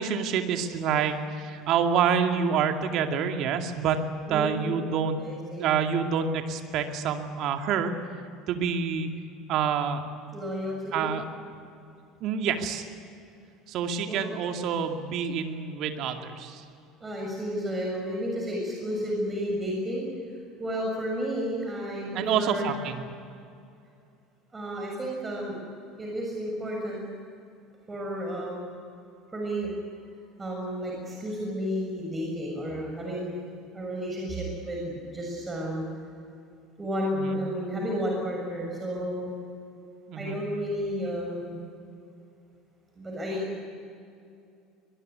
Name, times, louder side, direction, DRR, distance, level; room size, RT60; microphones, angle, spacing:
voice 1, 0.0-5.2 5.6-7.9 8.5-9.1 9.5-10.0 10.9-11.2 12.2-12.8 13.7-16.6 22.1-23.0 37.1-37.4 40.1-40.4, right 7 dB, 55° right, 5 dB, 2.4 m, -27 dB
voice 2, 4.3-4.9 5.2-5.7 10.3-11.1 14.1-14.3 17.0-20.1 20.6-22.7 24.5-25.6 26.0-27.0 27.9-28.6 29.3-29.7 30.4-33.3 33.7-35.8 36.8-39.3 40.1-41.6 42.9-43.6, equal, 20° right, -1 dB, 6.9 m, -32 dB
23.0 x 22.0 x 9.5 m, 2.5 s
hypercardioid pair, 70°, 0 cm